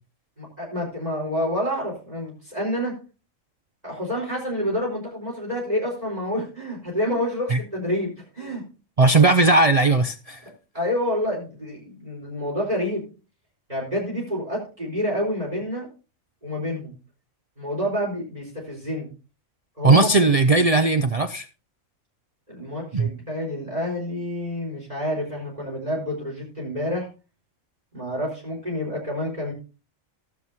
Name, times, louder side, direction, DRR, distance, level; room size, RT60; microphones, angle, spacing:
voice 1, 0.4-2.9 3.8-8.6 10.7-13.1 13.7-15.9 16.4-16.9 17.6-19.1 19.8-20.1 22.5-27.1 27.9-29.5, left 1 dB, 30° right, -3 dB, 4.4 m, -28 dB
voice 2, 9.0-10.4 19.8-21.5 22.9-23.1, right 3 dB, 55° right, 9 dB, 0.4 m, -17 dB
18.5 x 7.1 x 2.8 m, 0.33 s
omnidirectional pair, 1.4 m